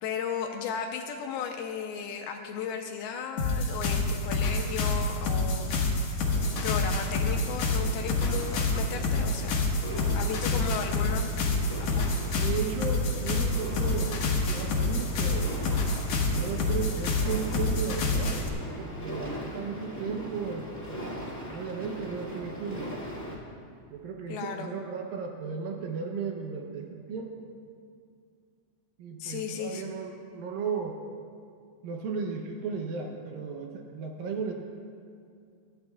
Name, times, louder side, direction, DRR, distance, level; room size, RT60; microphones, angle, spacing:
voice 1, 0.0-6.2 6.6-9.6 10.1-11.3 11.8-12.1 24.3-24.7 29.2-29.8, left 7 dB, 85° left, 4 dB, 2.4 m, -35 dB
sound 1, 3.4-18.5, left 2 dB, 60° left, 1.9 m, -27 dB
sound 2, 6.2-23.3, equal, 25° left, 0.3 m, -40 dB
voice 2, 10.5-10.9 12.1-15.6 16.2-18.4 18.8-20.7 21.5-22.9 23.9-27.5 29.0-31.0 31.8-34.5, right 5 dB, 75° right, 2 dB, 2.3 m, -35 dB
20.5 x 14.5 x 2.3 m, 2.3 s
omnidirectional pair, 4.7 m